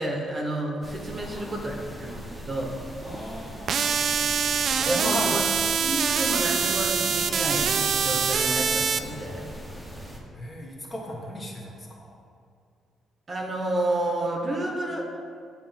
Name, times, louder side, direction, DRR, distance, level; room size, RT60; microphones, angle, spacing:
voice 1, 0.0-2.7 4.8-5.4 5.8-9.5 13.3-15.0, right 1 dB, 30° right, 0 dB, 0.9 m, -30 dB
sound 1, 0.8-10.2, equal, ahead, 0.9 m, -40 dB
voice 2, 1.1-2.3 3.0-4.1 4.7-5.4 10.3-12.2, equal, 30° left, -2 dB, 1.2 m, -37 dB
sound 2, 3.7-9.0, right 6 dB, 60° right, 0.3 m, -24 dB
6.8 x 3.0 x 5.7 m, 2.3 s
cardioid pair, 90°, 0 cm